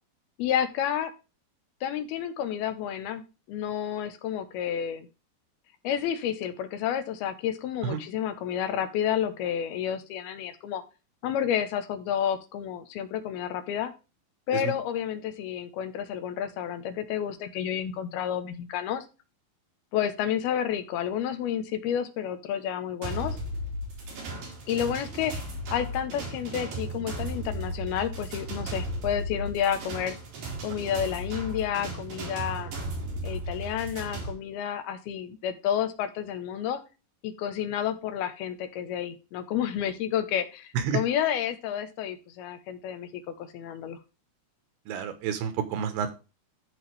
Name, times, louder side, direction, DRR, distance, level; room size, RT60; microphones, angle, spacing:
voice 1, 0.4-1.1 1.8-3.2 3.5-5.1 5.8-10.8 11.2-13.9 14.5-19.0 19.9-23.4 24.7-25.3 25.7-30.2 30.6-32.7 33.2-36.8 37.2-44.0, left 9 dB, 80° left, 9 dB, 3.0 m, -30 dB
sound 1, 23.0-34.3, right 1 dB, 65° right, 5.2 m, -35 dB
voice 2, 44.9-46.1, right 7 dB, 85° right, 9 dB, 3.2 m, -29 dB
14.0 x 4.8 x 3.4 m, 0.30 s
omnidirectional pair, 4.5 m